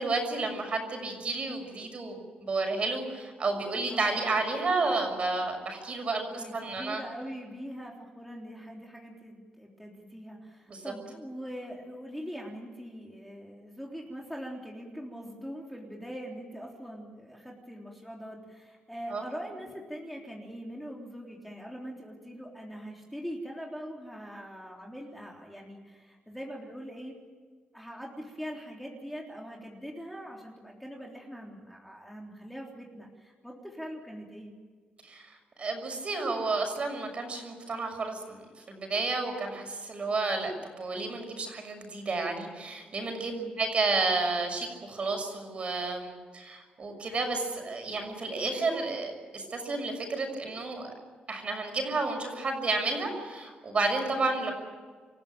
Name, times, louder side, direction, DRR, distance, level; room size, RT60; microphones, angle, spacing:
voice 1, 0.0-7.0 10.7-10.8 19.1-19.2 35.0-38.4 38.7-43.3 43.6-50.9 51.3-54.5, right 3 dB, 40° right, 4 dB, 6.4 m, -31 dB
voice 2, 6.4-27.2 27.7-34.5 43.2-43.5, equal, ahead, -1 dB, 3.7 m, -42 dB
28.0 x 15.0 x 8.9 m, 1.5 s
cardioid pair, 120°, 3 cm